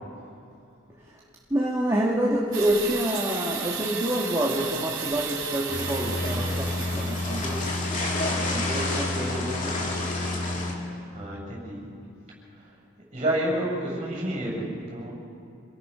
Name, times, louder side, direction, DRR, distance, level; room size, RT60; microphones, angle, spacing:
voice 1, 1.5-8.0 8.4-10.0, right 1 dB, 15° right, -4 dB, 1.7 m, -28 dB
sound 1, 2.5-7.9, right 6 dB, 80° right, 3.5 m, -34 dB
sound 2, 5.7-10.7, left 2 dB, 40° left, 2.6 m, -28 dB
voice 2, 11.1-11.8 13.1-15.1, right 1 dB, 35° right, -2 dB, 7.3 m, -29 dB
27.0 x 18.0 x 5.6 m, 2.5 s
head